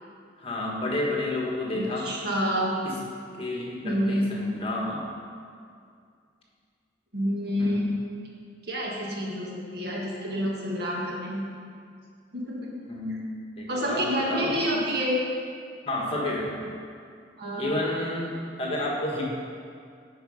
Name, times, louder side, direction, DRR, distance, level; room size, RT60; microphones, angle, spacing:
voice 1, 0.4-2.1 3.4-5.1 7.6-7.9 12.9-13.2 13.6-14.0 14.3-14.5 15.9-16.7 17.6-19.2, left 1 dB, 30° left, -3 dB, 1.4 m, -30 dB
voice 2, 1.7-2.8 3.8-4.4 7.1-7.9 8.6-11.5 12.3-12.7 13.7-15.2 17.4-17.7, equal, 60° right, -3 dB, 1.7 m, -28 dB
10.0 x 4.7 x 5.5 m, 2.3 s
head